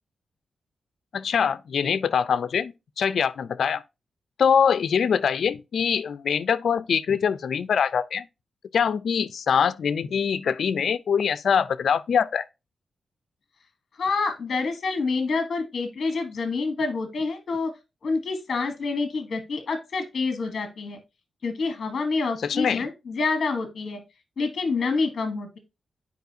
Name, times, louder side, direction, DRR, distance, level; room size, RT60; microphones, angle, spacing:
voice 1, 1.1-3.8 4.4-8.3 8.7-12.5 22.4-22.9, left 7 dB, 60° left, 0.4 m, -23 dB
voice 2, 14.0-17.7 18.0-21.0 21.4-24.0 24.4-25.6, left 4 dB, 40° left, 1.2 m, -27 dB
9.3 x 4.8 x 2.7 m
wide cardioid pair, 165°, 0 cm